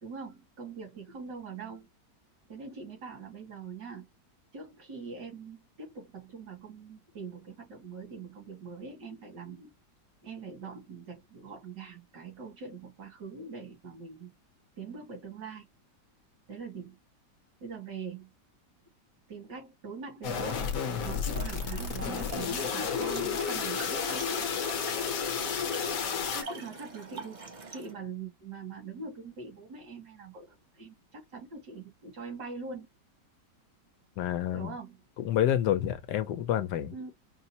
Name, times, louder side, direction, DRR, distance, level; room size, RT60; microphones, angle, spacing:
voice 1, 0.0-1.9 2.5-4.1 4.5-9.7 10.2-14.3 14.8-15.7 16.5-17.0 17.6-18.3 19.3-20.7 21.0-24.5 26.3-27.5 27.7-32.9 34.5-35.0 36.9-37.1, right 5 dB, 75° right, 2.7 m, -43 dB
sound 1, 20.2-26.4, left 6 dB, 60° left, 1.1 m, -32 dB
Trickle dribble / Fill (with liquid), 21.3-27.9, right 2 dB, 45° right, 0.5 m, -43 dB
voice 2, 34.2-34.7 35.2-36.9, left 11 dB, 80° left, 1.2 m, -28 dB
5.3 x 2.1 x 2.7 m
omnidirectional pair, 1.9 m